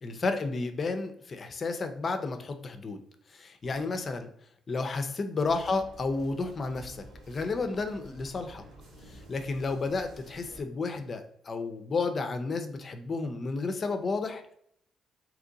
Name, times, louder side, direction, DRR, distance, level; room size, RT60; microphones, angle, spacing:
voice 1, 0.0-3.0 3.3-4.3 4.7-8.6 9.1-14.5, left 3 dB, 40° left, 7 dB, 0.5 m, -32 dB
sound 1, 5.4-10.6, right 1 dB, 85° right, 1.0 m, -50 dB
2.9 x 2.5 x 3.9 m, 0.69 s
cardioid pair, 90°, 0 cm